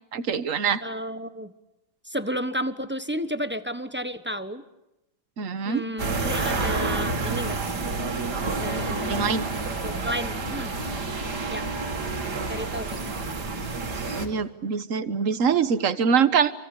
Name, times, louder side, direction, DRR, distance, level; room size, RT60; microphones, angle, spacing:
voice 1, 0.1-0.8 5.4-5.8 9.1-9.7 14.2-16.5, right 6 dB, 50° right, 13 dB, 1.5 m, -24 dB
voice 2, 0.8-1.5 2.0-4.6 5.6-7.6 8.4-9.4 9.8-10.7 11.5-11.7 12.5-13.0, equal, 10° right, 11 dB, 0.9 m, -32 dB
sound 1, 6.0-14.3, right 3 dB, 65° right, 3.0 m, -29 dB
29.0 x 24.5 x 8.5 m, 0.92 s
omnidirectional pair, 1.9 m